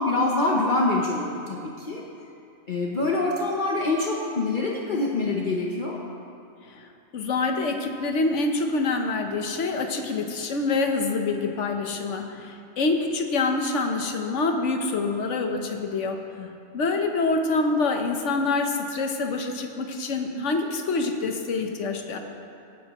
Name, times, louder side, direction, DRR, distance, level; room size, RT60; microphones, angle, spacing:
voice 1, 0.0-2.1 2.7-6.0 16.4-16.5, left 2 dB, 45° left, -2 dB, 1.0 m, -25 dB
voice 2, 6.6-16.2 16.7-22.2, left 3 dB, 85° left, 4 dB, 1.3 m, -26 dB
17.0 x 10.0 x 3.0 m, 2.6 s
omnidirectional pair, 1.2 m